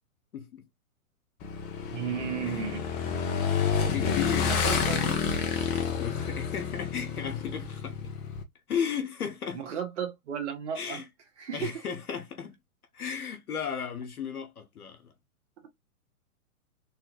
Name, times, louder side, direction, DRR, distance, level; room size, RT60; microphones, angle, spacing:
voice 1, 0.3-0.6 2.4-2.6 3.8-5.3 6.0-8.1 8.7-9.6 10.7-11.1 11.5-12.5 12.9-15.1, left 7 dB, 85° left, 1.0 m, -35 dB
Motorcycle / Engine, 1.4-8.4, left 6 dB, 25° left, 0.7 m, -29 dB
voice 2, 1.9-2.9 4.4-5.0 9.5-11.0 11.4-11.7, right 8 dB, 55° right, 1.4 m, -34 dB
3.6 x 2.4 x 3.0 m
hypercardioid pair, 120°, 43 cm